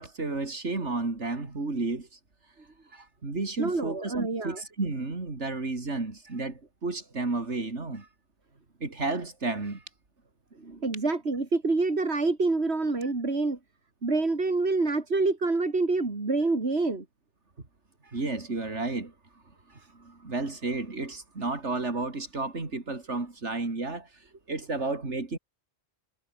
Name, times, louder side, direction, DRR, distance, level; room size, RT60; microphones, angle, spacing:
voice 1, 0.0-2.2 2.6-8.1 8.8-9.8 13.0-13.1 18.0-19.1 19.7-25.4, right 3 dB, 85° right, 3.6 m, -32 dB
voice 2, 3.6-4.6 10.6-13.6 14.0-17.0, right 3 dB, 65° right, 3.4 m, -27 dB
omnidirectional pair, 1.2 m